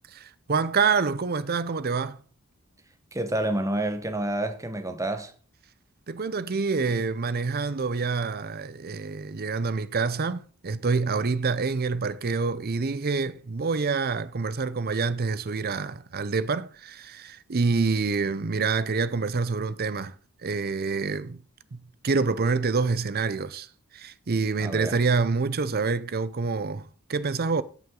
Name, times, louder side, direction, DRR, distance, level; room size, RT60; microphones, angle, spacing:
voice 1, 0.1-2.2 6.1-20.2 20.4-21.4 21.7-23.7 23.9-27.6, right 4 dB, 45° right, 0.6 m, -27 dB
voice 2, 3.1-5.3 24.6-25.0, right 1 dB, 15° right, 1.1 m, -29 dB
16.5 x 5.9 x 3.8 m
head